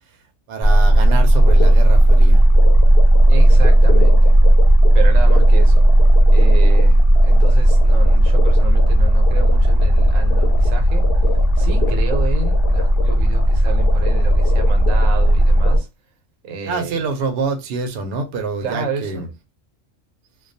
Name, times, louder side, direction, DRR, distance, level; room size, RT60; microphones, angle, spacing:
voice 1, 0.5-2.4 11.8-12.0 16.7-19.3, right 4 dB, 60° right, 0.7 m, -26 dB
sound 1, 0.6-15.8, right 1 dB, 55° left, 0.8 m, -13 dB
voice 2, 3.3-4.4 4.9-5.9 6.3-11.1 11.6-15.9 16.4-17.0 18.6-19.2, right 5 dB, 90° right, 1.0 m, -31 dB
2.3 x 2.2 x 2.6 m
omnidirectional pair, 1.3 m